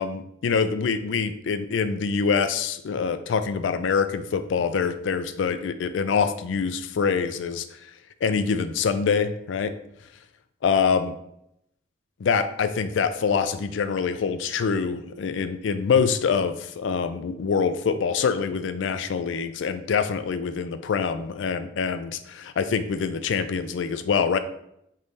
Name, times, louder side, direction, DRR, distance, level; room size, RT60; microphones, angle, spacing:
voice 1, 0.0-7.6 8.2-9.7 10.6-11.1 12.2-24.4, left 6 dB, 85° left, 11 dB, 0.4 m, -25 dB
3.6 x 3.1 x 4.0 m, 0.78 s
head